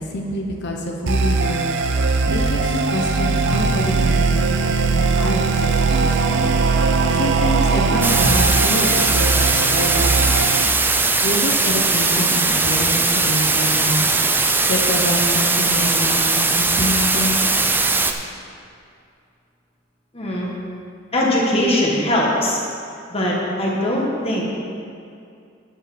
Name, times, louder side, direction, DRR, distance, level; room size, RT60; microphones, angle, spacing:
voice 1, 0.0-1.7 2.3-6.5 7.2-10.4 11.2-14.1 14.7-17.4, left 1 dB, 60° left, 1 dB, 0.9 m, -26 dB
sound 1, 1.1-10.7, right 4 dB, 65° right, 0.6 m, -19 dB
sound 2, 8.0-18.1, right 3 dB, 10° right, 0.5 m, -19 dB
voice 2, 20.1-20.5 21.1-22.6 23.1-24.4, left 1 dB, 30° left, -3 dB, 1.6 m, -20 dB
11.0 x 5.7 x 6.0 m, 2.4 s
head